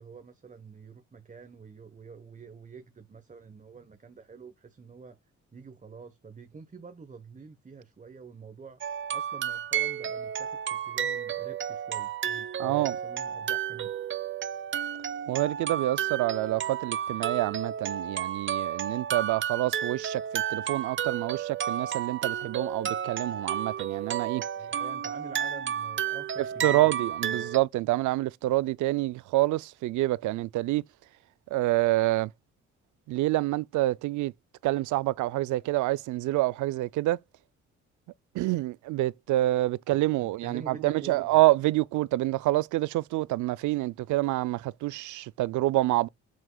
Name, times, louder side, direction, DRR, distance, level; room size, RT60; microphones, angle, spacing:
voice 1, 0.0-5.2 5.5-8.8 9.1-13.9 24.6-26.9 27.2-27.5 40.2-41.4, right 5 dB, 25° right, 1.0 m, -47 dB
sound 1, 8.8-27.6, right 9 dB, 40° right, 0.7 m, -32 dB
voice 2, 12.6-13.0 15.3-24.4 26.6-30.8 31.5-32.3 33.1-34.3 34.6-37.2 38.3-46.1, right 17 dB, 75° right, 0.5 m, -27 dB
9.1 x 6.3 x 2.3 m
cardioid pair, 90°, 30 cm